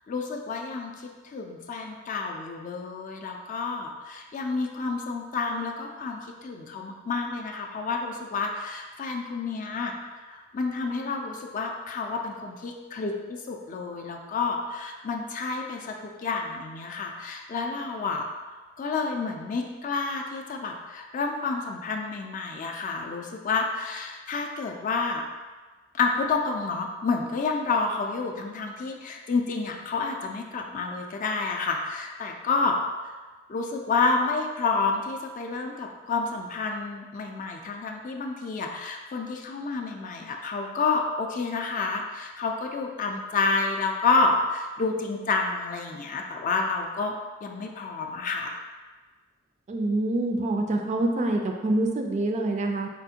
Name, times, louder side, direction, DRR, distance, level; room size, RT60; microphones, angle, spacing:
voice 1, 0.1-1.0 1.2-10.0 10.3-25.2 25.9-32.8 33.0-33.2 33.5-47.1 47.4-48.6, left 4 dB, 40° left, 2 dB, 0.4 m, -29 dB
voice 2, 49.7-52.9, right 2 dB, 35° right, 2 dB, 0.3 m, -26 dB
4.4 x 2.4 x 2.7 m, 1.3 s
head